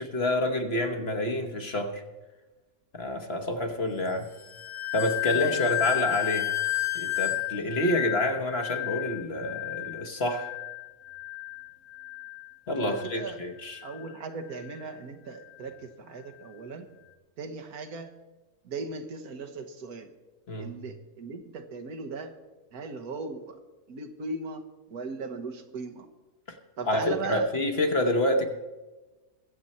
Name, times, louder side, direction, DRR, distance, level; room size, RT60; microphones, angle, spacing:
voice 1, 0.0-2.0 2.9-4.3 4.9-6.5 6.9-10.5 12.7-13.8 20.5-20.8 26.5-26.6 26.9-28.5, left 1 dB, 45° left, 5 dB, 1.3 m, -28 dB
sound 1, 4.3-13.3 13.7-14.1 14.6-14.9, left 19 dB, 90° left, 1.7 m, -32 dB
voice 2, 12.8-13.4 13.8-16.9 17.4-18.1 18.6-20.1 20.6-22.3 22.7-23.5 23.9-24.6 24.9-26.1 26.8-27.7, right 4 dB, 75° right, 5 dB, 1.6 m, -37 dB
23.0 x 7.7 x 4.3 m, 1.1 s
omnidirectional pair, 1.6 m